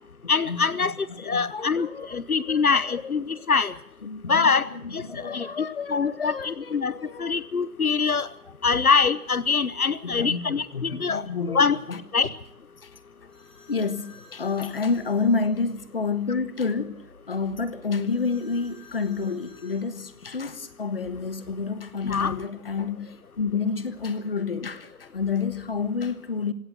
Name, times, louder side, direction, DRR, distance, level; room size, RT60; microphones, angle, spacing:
voice 1, 0.3-3.7 4.3-6.9 7.2-8.3 8.6-11.2 11.5-11.8 12.1-12.3 22.0-22.3, left 5 dB, 75° left, 1.1 m, -24 dB
voice 2, 1.2-2.2 2.5-3.1 4.0-7.3 8.7-8.8 10.0-12.3 12.8-12.9 13.7-26.5, left 4 dB, 40° left, 1.4 m, -29 dB
sound 1, 13.3-15.8 18.0-19.8, left 4 dB, 5° left, 7.1 m, -54 dB
22.0 x 17.0 x 7.7 m
figure-of-eight pair, 160°, 44 cm